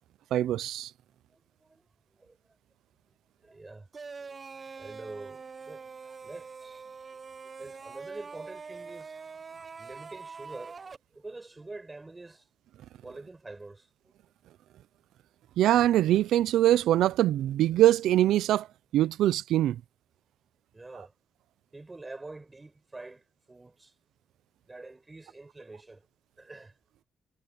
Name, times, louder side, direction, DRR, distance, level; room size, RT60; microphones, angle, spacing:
voice 1, 0.3-0.9 15.6-18.7 18.9-19.8, right 13 dB, 80° right, 0.6 m, -23 dB
voice 2, 1.3-1.9 2.1-2.4 3.4-4.4 4.8-7.2 7.6-9.1 9.8-12.5 13.0-13.9 20.7-21.1 21.7-23.9 24.7-26.1 26.4-26.8, right 2 dB, 20° right, 7.9 m, -46 dB
sound 1, 3.9-11.0, right 5 dB, 35° right, 0.9 m, -44 dB
cardioid pair, 90°, 0 cm